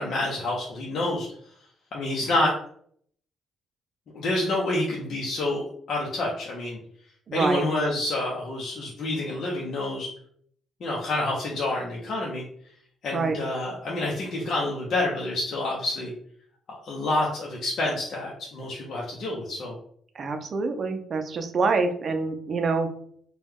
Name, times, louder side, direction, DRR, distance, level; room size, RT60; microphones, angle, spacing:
voice 1, 0.0-1.5 1.9-2.5 4.1-6.8 7.3-10.1 10.8-12.4 13.0-16.1 16.7-19.7, left 2 dB, 60° left, -3 dB, 0.7 m, -28 dB
voice 2, 7.3-7.6 13.1-13.3 20.2-22.9, right 4 dB, 50° right, 6 dB, 0.5 m, -26 dB
3.0 x 2.2 x 3.4 m, 0.63 s
cardioid pair, 90°, 0 cm